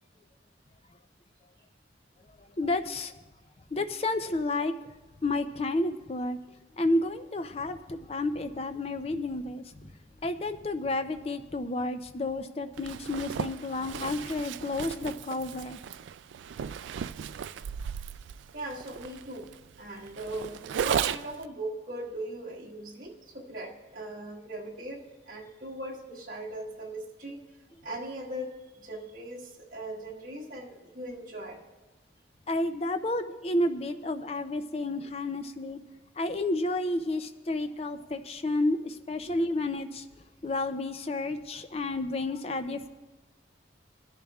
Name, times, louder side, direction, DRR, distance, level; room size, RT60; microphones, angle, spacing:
voice 1, 2.6-3.1 3.7-4.7 5.2-6.4 6.8-9.9 10.2-15.8 32.5-35.8 36.2-40.1 40.4-42.9, left 2 dB, 35° left, 9 dB, 0.5 m, -31 dB
Zipper (clothing), 12.8-21.5, right 8 dB, 85° right, 0.3 m, -35 dB
voice 2, 18.5-19.5 19.8-27.4 27.8-31.6 39.3-39.4, right 1 dB, 50° right, -2 dB, 1.6 m, -39 dB
21.5 x 10.5 x 2.4 m, 1.2 s
head